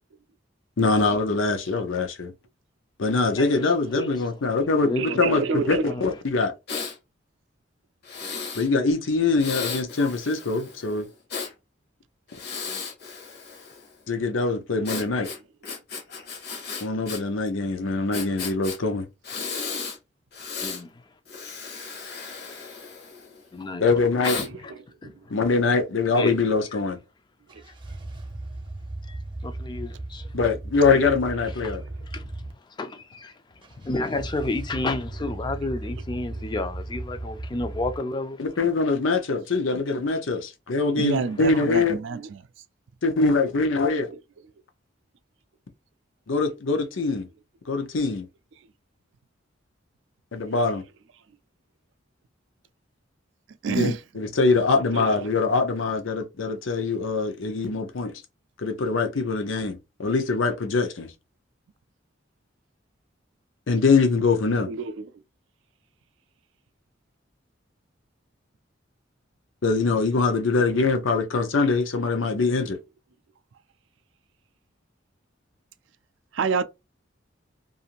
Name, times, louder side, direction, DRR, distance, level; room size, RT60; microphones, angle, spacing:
voice 1, 0.8-2.3 3.0-6.5 8.5-11.1 14.1-15.3 16.8-19.1 23.8-24.4 25.3-27.0 30.3-31.8 38.4-42.0 43.0-44.1 46.3-47.3 47.7-48.3 50.3-50.8 53.8-58.1 58.6-61.1 63.7-64.7 69.6-72.8, left 3 dB, 85° left, 0.7 m, -23 dB
voice 2, 3.3-4.1 4.8-5.0 5.5-6.0 20.6-20.9 23.5-24.0 24.2-24.7 25.0-25.1 26.1-26.4 29.1-30.3 32.1-32.2 32.8-33.3 33.8-38.4, left 2 dB, 25° left, 0.3 m, -31 dB
voice 3, 4.7-5.8 24.4-24.5 41.0-42.4 53.6-54.0 54.9-55.1 64.7-64.9 70.6-70.7 76.3-76.6, right 5 dB, 70° right, 0.4 m, -27 dB
Breathing, 6.7-7.0 8.0-8.7 9.4-11.5 12.3-13.9 14.8-17.2 17.5-17.6 18.1-18.8 19.2-20.0 20.3-20.8 21.3-23.4 24.2-24.5, left 5 dB, 55° left, 0.8 m, -35 dB
sound 1, 27.5-32.5 33.6-38.0, right 2 dB, 25° right, 0.6 m, -36 dB
2.5 x 2.5 x 2.8 m
head